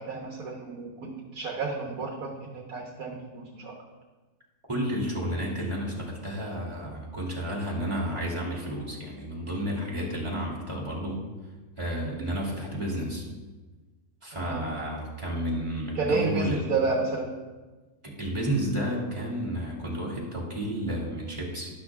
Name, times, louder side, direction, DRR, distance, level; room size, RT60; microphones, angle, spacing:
voice 1, 0.0-3.8 12.0-12.3 14.3-14.7 15.9-17.4, right 4 dB, 70° right, 0 dB, 1.5 m, -31 dB
voice 2, 4.7-11.2 11.8-13.3 14.2-16.7 18.0-21.7, equal, 20° right, -4 dB, 2.5 m, -31 dB
12.5 x 11.0 x 2.4 m, 1.3 s
omnidirectional pair, 1.6 m